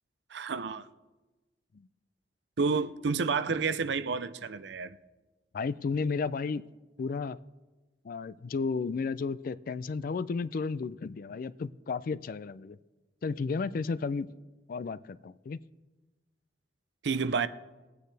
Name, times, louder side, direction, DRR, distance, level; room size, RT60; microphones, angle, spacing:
voice 1, 0.3-0.9 2.6-5.0 17.0-17.5, right 5 dB, 75° right, 0.5 m, -30 dB
voice 2, 5.5-6.6 7.0-7.4 8.0-12.8 13.2-14.3 14.7-15.6, left 4 dB, 50° left, 0.4 m, -33 dB
21.0 x 9.2 x 3.3 m
head